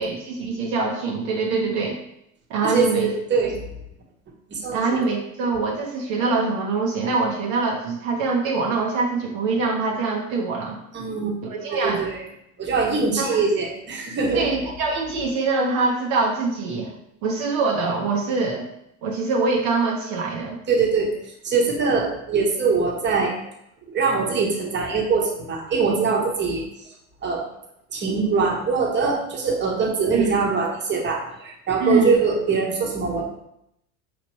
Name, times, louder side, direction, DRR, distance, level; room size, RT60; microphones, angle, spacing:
voice 1, 0.0-2.0 2.5-3.1 4.7-10.8 11.5-12.0 13.2-13.4 14.3-16.9 17.2-18.7 19.0-20.6 30.1-30.3 31.8-32.2, right 3 dB, 60° right, -1 dB, 0.9 m, -24 dB
voice 2, 2.6-3.5 4.5-4.8 10.9-11.4 11.7-12.2 12.6-14.5 20.7-21.1 21.4-23.3 23.9-26.6 27.2-27.4 27.9-33.3, right 4 dB, 30° right, 0 dB, 1.1 m, -22 dB
4.9 x 3.1 x 3.0 m, 0.79 s
hypercardioid pair, 90°, 37 cm